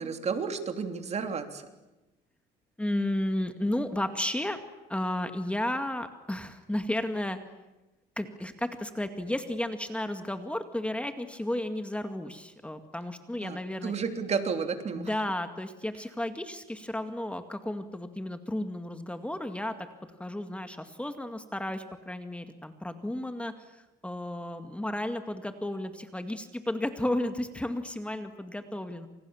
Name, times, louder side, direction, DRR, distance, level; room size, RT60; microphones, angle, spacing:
voice 1, 0.0-1.7 13.4-15.1, right 5 dB, 40° right, 7 dB, 3.3 m, -32 dB
voice 2, 2.8-4.6 4.9-7.4 8.2-13.9 14.9-19.8 20.2-29.1, left 1 dB, 5° left, 8 dB, 2.1 m, -33 dB
28.5 x 28.0 x 7.3 m, 1.1 s
cardioid pair, 110°, 17 cm